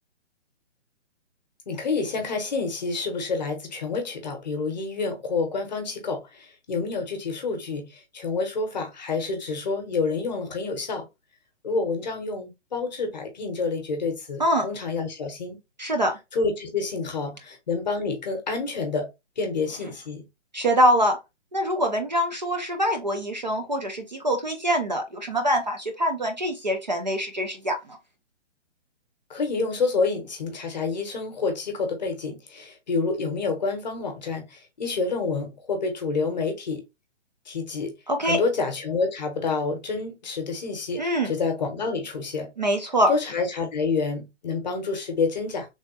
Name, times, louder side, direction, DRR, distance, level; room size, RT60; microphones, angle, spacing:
voice 1, 1.7-7.9 8.1-11.0 11.6-15.6 16.3-19.1 19.4-20.2 29.3-36.8 37.5-37.9 38.2-42.5 43.1-45.7, left 4 dB, 35° left, 0.8 m, -28 dB
voice 2, 15.8-16.2 20.5-21.2 21.5-27.8 38.1-38.4 41.0-41.3 42.6-43.1, equal, 40° right, 0.4 m, -24 dB
3.3 x 2.0 x 2.7 m
hypercardioid pair, 170°, 36 cm